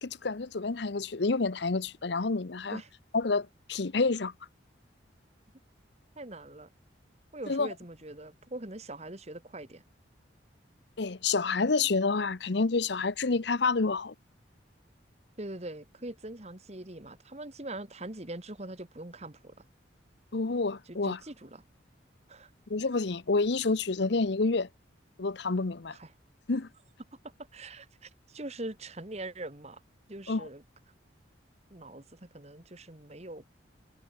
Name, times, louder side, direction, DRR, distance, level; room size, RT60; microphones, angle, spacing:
voice 1, 0.0-2.8 3.1-4.3 7.5-7.7 11.0-14.1 20.3-21.2 22.7-24.7 25.2-26.0 26.5-26.7 30.3-30.5, left 3 dB, 60° left, 0.8 m, -28 dB
voice 2, 6.2-6.7 7.3-9.8 15.4-19.5 20.9-21.6 22.3-22.5 25.9-26.1 27.5-29.8 30.1-30.6 31.7-33.5, right 1 dB, 35° right, 1.8 m, -42 dB
head